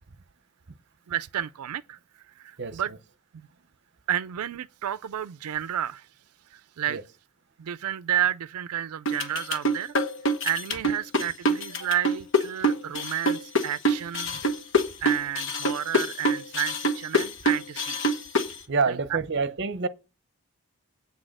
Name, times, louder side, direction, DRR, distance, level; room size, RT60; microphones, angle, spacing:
voice 1, 1.1-2.9 3.3-3.5 4.1-6.1 6.5-7.0 7.6-9.9 10.4-14.4 15.0-18.0 18.9-19.2, right 10 dB, 90° right, 0.4 m, -31 dB
sound 1, 9.1-18.6, equal, 55° left, 1.2 m, -25 dB
voice 2, 18.7-19.9, right 4 dB, 50° right, 0.7 m, -27 dB
8.3 x 6.2 x 6.4 m
head